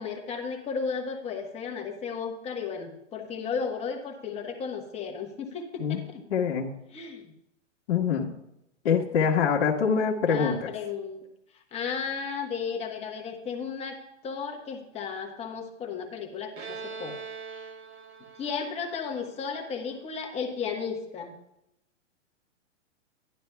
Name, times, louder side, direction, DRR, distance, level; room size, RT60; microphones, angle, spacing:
voice 1, 0.0-6.2 6.9-7.3 10.3-11.2 11.7-14.0 14.2-17.2 17.5-17.7 18.4-21.3, left 6 dB, 15° left, 2 dB, 1.1 m, -34 dB
voice 2, 6.3-6.7 7.9-8.3 8.8-10.6, left 6 dB, 50° left, -4 dB, 1.4 m, -24 dB
Bowed string instrument, 16.6-20.1, right 5 dB, 60° right, 1.4 m, -42 dB
12.5 x 11.5 x 2.3 m, 0.82 s
hypercardioid pair, 140°, 38 cm